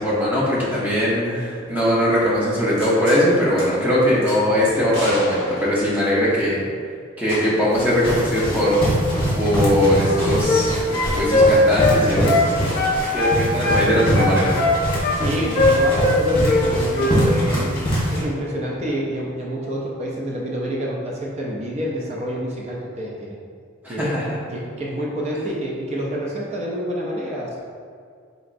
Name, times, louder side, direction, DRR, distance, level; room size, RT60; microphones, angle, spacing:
voice 1, 0.0-6.7 7.2-8.8 9.4-10.8 11.2-12.8 13.1-14.5 17.4-17.7 23.8-24.3, equal, 10° right, -7 dB, 0.8 m, -20 dB
sound 1, 2.8-3.2 3.6-3.7 4.2-4.4 4.9-6.4 7.3-7.7 8.0-8.1 10.2-10.4 12.7-12.9 15.7-15.8, equal, 70° right, 1.4 m, -33 dB
sound 2, 7.7-18.2, equal, 25° left, 1.1 m, -24 dB
sound 3, 9.9-10.7 10.9-12.5 12.7-13.9 14.1-15.2 15.5-16.7 16.9-17.2, left 2 dB, 45° left, 0.7 m, -19 dB
voice 2, 15.1-17.6 18.1-23.4 23.9-24.1 24.5-27.6, equal, 35° right, -3 dB, 0.4 m, -27 dB
3.9 x 3.4 x 2.5 m, 2.2 s
head